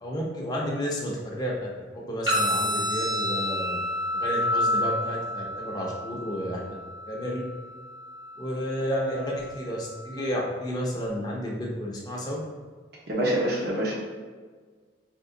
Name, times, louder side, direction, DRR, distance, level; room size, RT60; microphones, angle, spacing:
voice 1, 0.0-1.7 1.9-3.8 4.1-6.6 7.1-7.4 8.4-12.4, equal, 20° left, -3 dB, 0.7 m, -31 dB
sound 1, 2.3-10.3, left 1 dB, 20° right, 0.7 m, -30 dB
voice 2, 13.1-13.9, right 1 dB, 55° right, -4 dB, 1.0 m, -25 dB
4.5 x 3.0 x 2.7 m, 1.5 s
head